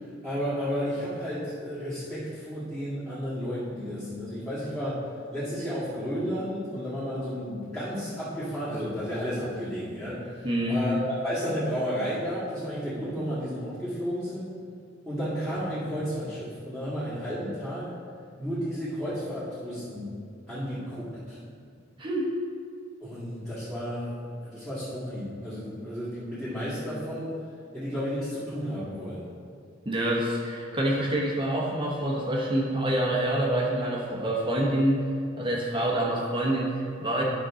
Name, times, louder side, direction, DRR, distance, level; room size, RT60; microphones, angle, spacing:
voice 1, 0.2-14.5 15.1-17.9 18.4-20.2 20.5-21.4 23.0-27.4 27.7-29.3, equal, 5° left, -14 dB, 2.1 m, -32 dB
voice 2, 10.4-10.8 22.0-22.3 29.8-35.0 35.4-37.2, right 1 dB, 25° right, -2 dB, 1.0 m, -26 dB
11.0 x 6.0 x 3.8 m, 2.2 s
head